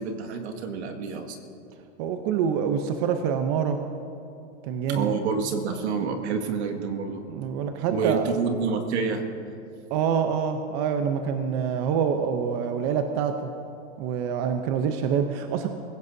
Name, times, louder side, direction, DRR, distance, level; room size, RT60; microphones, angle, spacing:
voice 1, 0.0-1.4 4.9-7.2 7.9-9.2, right 5 dB, 70° right, 5 dB, 2.0 m, -28 dB
voice 2, 2.0-3.8 4.6-5.1 7.3-8.3 9.9-13.5 14.0-15.7, right 7 dB, 35° right, 7 dB, 0.8 m, -26 dB
25.5 x 16.0 x 2.8 m, 2.6 s
supercardioid pair, 155°, 35 cm